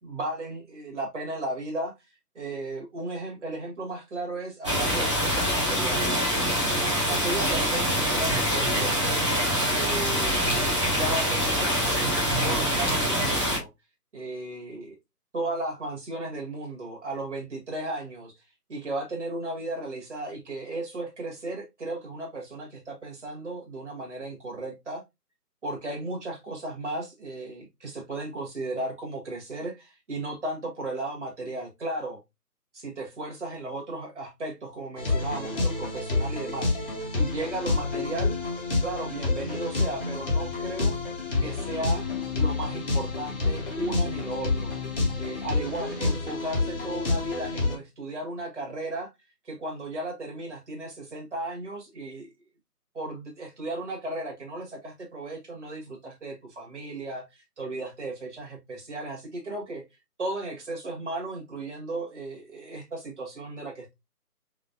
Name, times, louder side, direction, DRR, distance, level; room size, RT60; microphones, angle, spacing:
voice 1, 0.0-1.9 2.4-6.2 7.1-9.3 9.7-10.5 10.9-13.7 14.1-15.0 15.3-18.3 18.7-25.0 25.6-32.2 32.7-38.4 38.8-40.9 41.4-42.0 42.3-44.7 45.2-49.1 49.5-52.3 52.9-59.8 60.2-63.9, right 2 dB, 45° right, 1.8 m, -35 dB
sound 1, 4.6-13.6, equal, 20° right, 0.9 m, -25 dB
sound 2, 35.0-47.7, left 3 dB, 35° left, 1.3 m, -28 dB
3.5 x 3.5 x 2.6 m
figure-of-eight pair, 160°, 47 cm